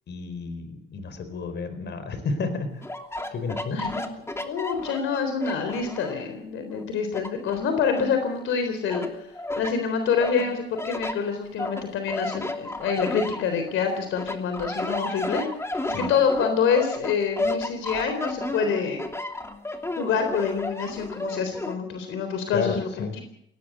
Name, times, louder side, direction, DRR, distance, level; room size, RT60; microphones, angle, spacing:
voice 1, 0.1-2.7 3.3-3.8 15.9-16.1 22.5-23.1, left 4 dB, 60° left, 10 dB, 4.6 m, -31 dB
sound 1, 2.8-6.3 6.7-8.5 8.9-9.8 10.2-13.8 14.2-21.8, left 2 dB, 15° left, 2.8 m, -32 dB
voice 2, 3.7-4.0 4.3-9.1 9.6-15.5 16.1-19.1 20.0-23.2, left 6 dB, 85° left, 7 dB, 3.8 m, -26 dB
18.5 x 18.0 x 8.1 m, 0.75 s
cardioid pair, 90°, 20 cm